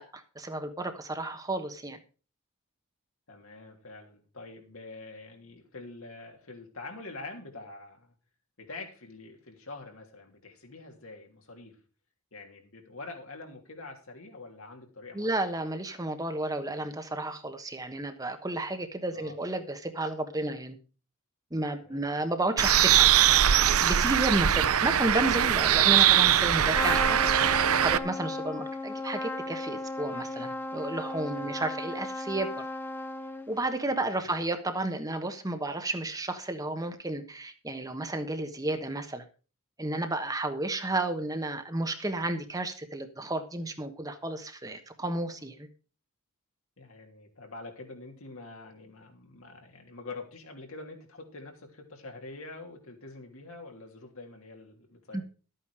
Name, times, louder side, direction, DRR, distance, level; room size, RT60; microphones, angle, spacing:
voice 1, 0.0-2.0 15.1-20.8 21.5-23.1 23.8-27.2 27.6-32.6 33.5-39.2 39.8-45.7 55.1-55.2, right 2 dB, 15° right, 7 dB, 1.2 m, -32 dB
voice 2, 3.3-8.1 8.6-11.8 12.3-15.5 19.1-19.4 21.8-22.3 27.8-28.0 31.4-31.5 34.1-34.3 46.8-55.2, left 3 dB, 70° left, 3 dB, 3.2 m, -45 dB
Bird, 22.6-28.0, right 10 dB, 80° right, 0.7 m, -22 dB
Trumpet, 26.7-33.6, left 2 dB, 10° left, 0.9 m, -35 dB
12.5 x 8.8 x 4.9 m, 0.36 s
head